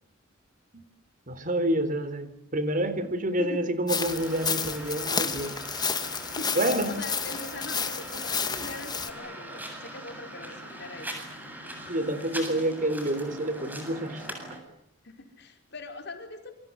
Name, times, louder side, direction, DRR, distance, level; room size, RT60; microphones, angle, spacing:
voice 1, 1.3-5.6 6.6-6.9 11.9-14.3, right 1 dB, 45° right, 12 dB, 3.9 m, -28 dB
voice 2, 3.4-3.8 6.3-6.6 6.9-11.1 15.0-16.5, left 2 dB, 60° left, 5 dB, 5.3 m, -41 dB
sound 1, 3.9-9.1, left 6 dB, 20° left, 2.3 m, -31 dB
sound 2, 4.0-14.6, right 1 dB, 10° right, 7.9 m, -41 dB
28.5 x 25.5 x 8.2 m, 0.73 s
head